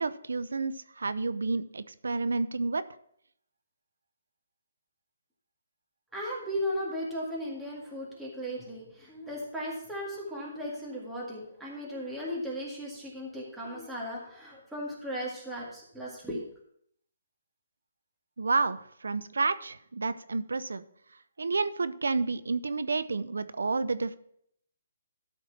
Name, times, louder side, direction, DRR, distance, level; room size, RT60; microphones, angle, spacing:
voice 1, 0.0-2.8 18.4-20.8 21.4-24.2, right 3 dB, 85° right, 14 dB, 0.6 m, -30 dB
voice 2, 6.1-16.4, equal, 5° right, -6 dB, 2.0 m, -36 dB
12.5 x 4.4 x 5.8 m, 0.68 s
hypercardioid pair, 155°, 0 cm